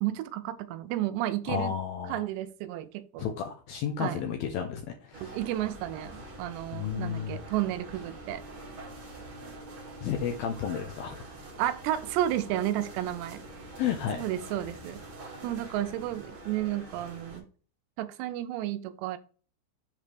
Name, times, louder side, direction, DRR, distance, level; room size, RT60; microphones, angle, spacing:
voice 1, 0.0-1.7 2.1-3.3 4.0-4.2 5.2-8.4 11.6-13.4 14.2-15.0 15.4-17.4 18.0-19.2, right 13 dB, 80° right, 11 dB, 2.7 m, -32 dB
voice 2, 1.5-2.2 3.2-5.4 6.7-7.4 10.0-11.2 13.8-14.2, left 8 dB, 75° left, 3 dB, 2.2 m, -32 dB
sound 1, 5.1-17.4, right 2 dB, 55° right, 1.4 m, -45 dB
7.4 x 3.2 x 4.9 m, 0.39 s
omnidirectional pair, 5.1 m